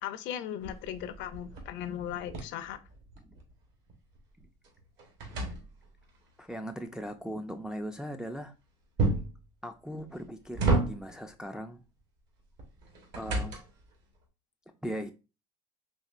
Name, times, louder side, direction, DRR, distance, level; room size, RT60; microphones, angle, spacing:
voice 1, 0.0-2.8, left 10 dB, 60° left, 0.5 m, -37 dB
sound 1, 0.6-3.5 3.9-6.2 9.0-9.4 10.1-11.3 12.6-13.9, right 3 dB, 60° right, 1.3 m, -32 dB
voice 2, 6.4-8.5 9.6-11.8 13.2-13.6 14.7-15.1, equal, 5° right, 0.3 m, -39 dB
4.1 x 2.9 x 2.4 m
supercardioid pair, 95°, 21 cm